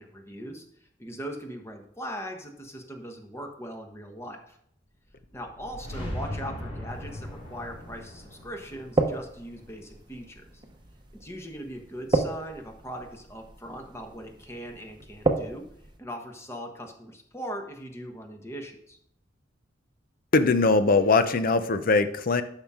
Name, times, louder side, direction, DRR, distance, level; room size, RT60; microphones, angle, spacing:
voice 1, 0.0-4.6 5.3-10.6 11.2-15.7 16.0-19.0, equal, 15° left, 3 dB, 1.2 m, -40 dB
sound 1, 5.1-10.3, left 1 dB, 70° left, 3.1 m, -39 dB
sound 2, 6.9-16.0, right 3 dB, 25° right, 0.9 m, -33 dB
voice 2, 20.3-22.4, left 3 dB, 50° left, 11 dB, 0.7 m, -21 dB
12.0 x 5.7 x 3.7 m, 0.69 s
head